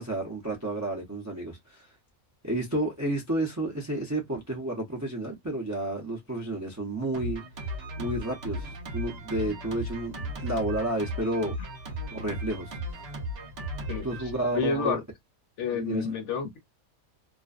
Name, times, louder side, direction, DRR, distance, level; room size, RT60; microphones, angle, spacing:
voice 1, 0.0-1.9 2.4-7.4 8.0-11.6 12.1-12.8 14.0-15.0 15.7-16.1, right 1 dB, 30° right, 0.3 m, -31 dB
Drum kit, 7.1-14.9, equal, 55° right, 0.9 m, -36 dB
voice 2, 13.9-14.2 14.5-15.0 15.6-16.6, left 5 dB, 60° left, 0.9 m, -29 dB
2.5 x 2.1 x 2.4 m
omnidirectional pair, 1.5 m